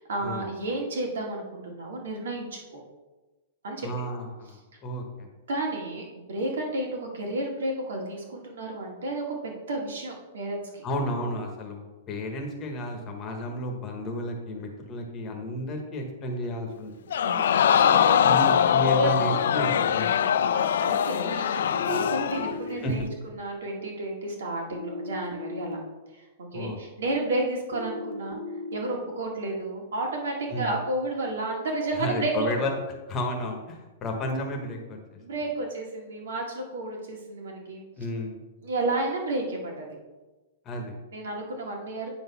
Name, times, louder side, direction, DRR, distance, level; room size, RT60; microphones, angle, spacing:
voice 1, 0.0-2.8 3.6-4.1 5.5-10.8 17.2-19.4 20.5-23.1 23.4-25.8 26.1-28.4 28.7-32.7 35.2-37.9 38.6-39.9 41.1-42.1, right 2 dB, 90° right, 0 dB, 2.1 m, -31 dB
voice 2, 3.8-5.3 10.8-17.2 18.2-20.3 22.8-22.9 26.5-26.8 30.5-30.7 31.9-32.8 33.1-35.2 38.0-38.4 40.6-41.0, left 1 dB, 15° left, 2 dB, 1.1 m, -32 dB
Crowd, 17.1-22.6 23.0-23.1, left 9 dB, 65° left, 0.3 m, -22 dB
sound 1, 21.7-22.7 24.7-25.7 27.7-28.7, left 3 dB, 45° right, 0.9 m, -36 dB
8.8 x 4.0 x 5.6 m, 1.2 s
supercardioid pair, 175°, 0 cm